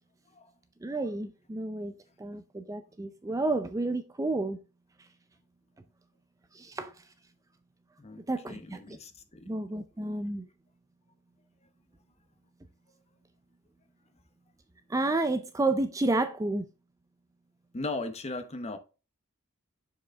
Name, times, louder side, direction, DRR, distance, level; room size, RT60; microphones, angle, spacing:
voice 1, 0.8-4.6 6.5-6.9 8.3-9.0 9.5-10.5 14.9-16.7, right 2 dB, 15° right, 0.4 m, -31 dB
voice 2, 8.0-9.5 17.7-18.8, left 2 dB, 30° left, 0.8 m, -38 dB
7.0 x 5.0 x 3.4 m
head